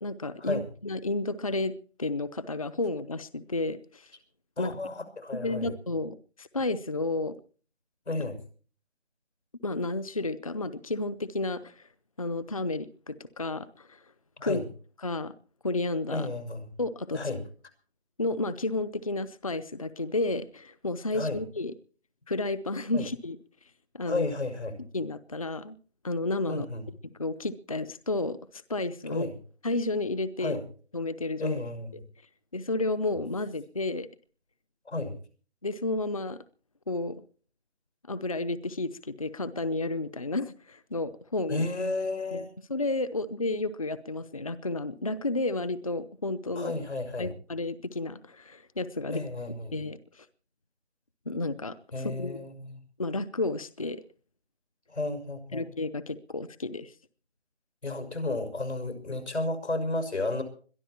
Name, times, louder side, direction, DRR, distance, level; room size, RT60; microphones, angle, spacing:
voice 1, 0.0-1.7 2.0-4.1 4.6-4.8 5.3-7.3 9.6-11.9 12.2-14.0 14.4-14.6 15.0-15.3 15.6-16.3 16.8-17.2 18.2-21.7 22.3-23.4 23.9-24.3 24.9-25.8 26.0-26.7 27.2-29.3 29.6-30.6 30.9-31.6 32.5-34.1 35.6-36.4 36.9-37.2 38.1-41.6 42.3-46.8 47.2-49.2 49.7-50.3 51.3-52.4 53.0-54.0 55.5-56.9, left 2 dB, 35° left, 14 dB, 0.7 m, -31 dB
voice 2, 4.6-5.7 8.1-8.4 14.4-14.6 16.1-16.7 17.1-17.4 21.1-21.4 22.9-23.0 24.0-24.8 26.5-26.9 29.1-29.3 30.4-30.6 31.4-32.0 34.9-35.2 41.5-42.5 46.5-47.3 49.1-49.8 51.9-52.8 54.9-55.6 57.8-60.4, left 2 dB, 90° left, 7 dB, 6.4 m, -32 dB
22.0 x 13.0 x 4.4 m, 0.41 s
figure-of-eight pair, 170°, 32 cm